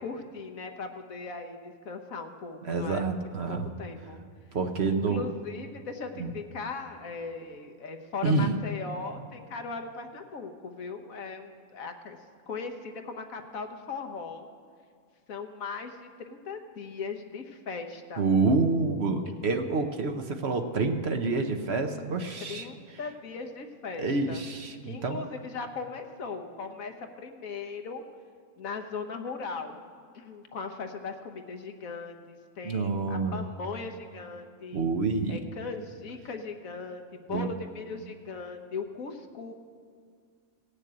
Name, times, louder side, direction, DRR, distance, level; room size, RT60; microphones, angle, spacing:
voice 1, 0.0-3.1 3.5-4.2 4.9-12.2 12.5-14.5 15.3-18.2 22.4-24.4 24.8-28.0 28.6-29.8 30.1-34.9 35.3-39.5, left 4 dB, 75° left, 5 dB, 1.5 m, -38 dB
voice 2, 2.6-3.7 4.5-5.2 6.2-6.3 8.2-8.6 18.2-22.7 24.0-25.2 32.6-33.4 34.7-35.4 37.3-37.5, right 3 dB, 50° right, 5 dB, 1.1 m, -27 dB
17.5 x 6.7 x 8.6 m, 2.1 s
omnidirectional pair, 1.5 m